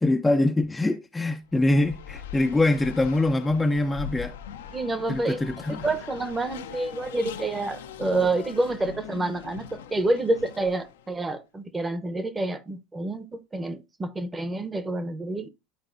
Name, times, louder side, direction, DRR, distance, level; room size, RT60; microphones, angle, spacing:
voice 1, 0.0-4.3 5.1-5.8, left 2 dB, 10° left, 0.6 m, -24 dB
Race car auto racing, 1.5-11.1, left 9 dB, 80° left, 0.8 m, -41 dB
voice 2, 4.7-5.4 5.8-15.5, right 2 dB, 20° right, 1.0 m, -28 dB
12.5 x 4.2 x 2.6 m
hypercardioid pair, 85°, 0 cm